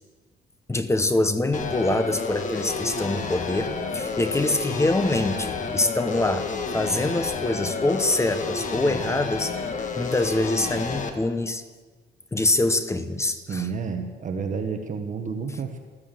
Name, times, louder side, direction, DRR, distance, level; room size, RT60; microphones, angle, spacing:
voice 1, 0.7-11.6 12.3-13.7, left 2 dB, 15° left, 9 dB, 1.0 m, -25 dB
sound 1, 1.5-11.1, left 4 dB, 40° left, 1.6 m, -30 dB
voice 2, 13.5-15.8, right 5 dB, 45° right, 5 dB, 1.3 m, -30 dB
14.5 x 13.5 x 7.6 m, 1.4 s
cardioid pair, 145°, 19 cm